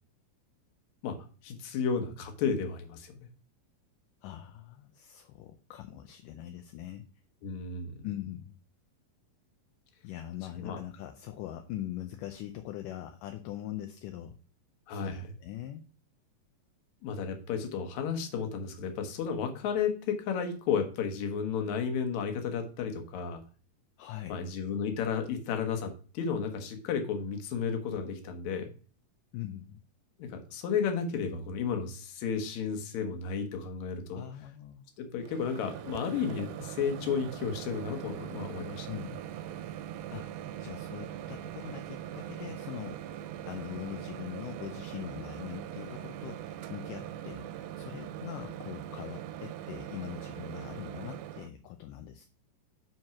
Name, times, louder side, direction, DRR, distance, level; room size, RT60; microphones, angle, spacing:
voice 1, 1.4-3.2 7.4-8.0 10.6-10.8 14.9-15.3 17.0-23.4 24.3-28.7 30.2-34.2 35.0-39.0, left 6 dB, 60° left, 5 dB, 2.2 m, -33 dB
voice 2, 4.2-7.1 8.0-8.6 10.0-14.4 14.9-15.8 24.0-24.4 29.3-29.8 34.1-34.8 38.9-39.2 40.1-43.0 43.5-52.2, left 12 dB, 80° left, 6 dB, 2.0 m, -42 dB
Microwave oven, 35.2-51.5, right 11 dB, 85° right, 2.4 m, -41 dB
7.7 x 4.5 x 5.8 m, 0.40 s
omnidirectional pair, 4.3 m